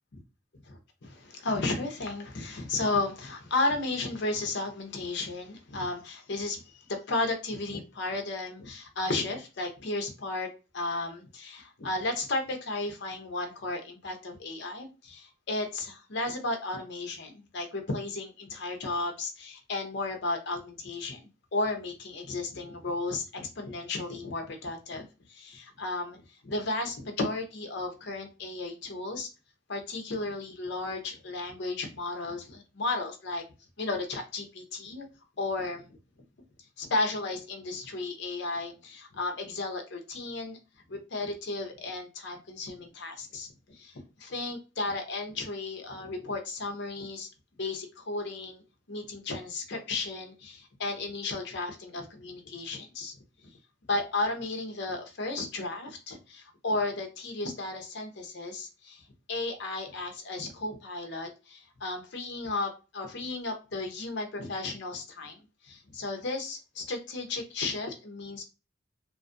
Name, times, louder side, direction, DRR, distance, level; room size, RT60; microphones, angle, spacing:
voice 1, 0.7-10.5 10.7-29.3 29.7-33.4 33.8-35.1 35.4-35.9 36.8-40.6 40.9-47.3 47.6-48.6 48.9-53.2 53.9-59.0 59.3-68.4, left 2 dB, 55° left, 0.6 m, -34 dB
2.5 x 2.4 x 2.5 m
head